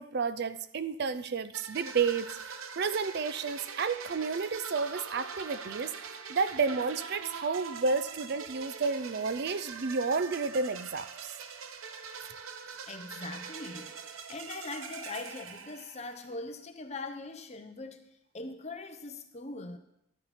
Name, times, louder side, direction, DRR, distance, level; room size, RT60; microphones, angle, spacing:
voice 1, 0.0-5.9 6.3-11.3, right 5 dB, 50° right, 13 dB, 0.4 m, -31 dB
sound 1, 1.5-16.3, right 6 dB, 80° right, 0.8 m, -43 dB
voice 2, 12.9-18.1 18.3-19.8, left 3 dB, 30° left, 7 dB, 0.8 m, -41 dB
12.5 x 9.6 x 4.2 m, 0.83 s
head